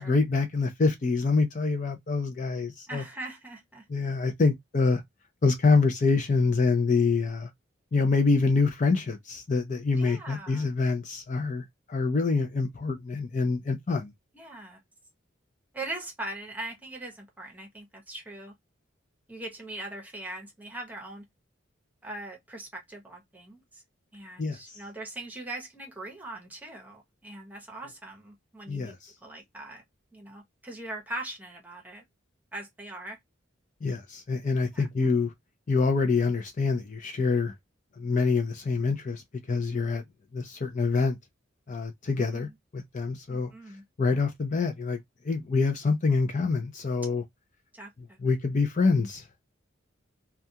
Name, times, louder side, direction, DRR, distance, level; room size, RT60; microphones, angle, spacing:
voice 1, 0.0-3.0 3.9-5.0 5.4-7.5 7.9-14.1 24.4-24.8 28.7-29.1 33.8-35.3 35.7-37.5 38.0-40.0 40.3-41.2 41.7-42.5 42.7-43.5 44.0-45.0 45.2-47.2 48.2-49.3, left 4 dB, 40° left, 0.4 m, -26 dB
voice 2, 2.9-3.8 10.0-10.7 14.3-14.8 15.7-18.5 19.3-21.2 22.0-23.8 24.1-28.9 29.2-29.8 30.1-32.0 32.5-33.2 34.7-34.9 42.2-42.5 43.3-43.8 47.7-48.2, right 2 dB, 10° right, 0.8 m, -41 dB
2.3 x 2.2 x 2.7 m
head